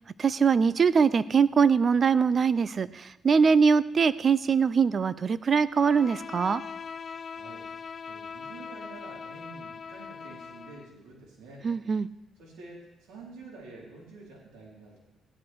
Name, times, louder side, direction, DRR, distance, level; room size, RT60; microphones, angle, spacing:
voice 1, 0.2-6.6 11.6-12.1, right 6 dB, 45° right, 17 dB, 0.5 m, -22 dB
Bowed string instrument, 5.7-10.9, left 6 dB, 45° left, 0.6 m, -41 dB
voice 2, 7.2-7.7 8.0-11.6 12.4-15.0, right 3 dB, 90° right, -5 dB, 4.5 m, -48 dB
17.0 x 11.5 x 4.7 m, 0.98 s
cardioid pair, 90°, 0 cm